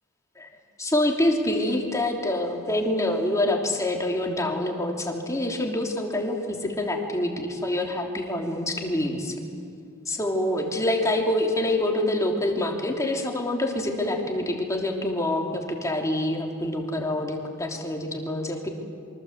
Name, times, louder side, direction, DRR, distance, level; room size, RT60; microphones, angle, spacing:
voice 1, 0.8-9.3 10.1-18.7, left 1 dB, 15° left, 1 dB, 3.2 m, -26 dB
26.5 x 24.5 x 8.2 m, 2.4 s
head